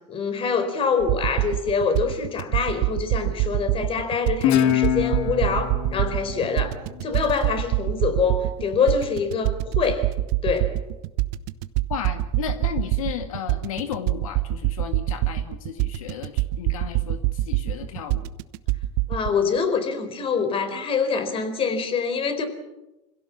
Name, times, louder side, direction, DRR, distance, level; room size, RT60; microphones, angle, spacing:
voice 1, 0.1-6.7 7.0-10.1 10.4-10.7 19.1-22.5, left 5 dB, 30° left, 9 dB, 4.3 m, -25 dB
sound 1, 1.0-19.3, right 17 dB, 60° right, 1.2 m, -25 dB
Guitar, 4.4-7.7, left 10 dB, 60° left, 2.0 m, -25 dB
voice 2, 11.9-18.2, left 9 dB, 85° left, 7 dB, 2.0 m, -34 dB
27.0 x 17.0 x 7.4 m, 0.99 s
supercardioid pair, 110°, 17 cm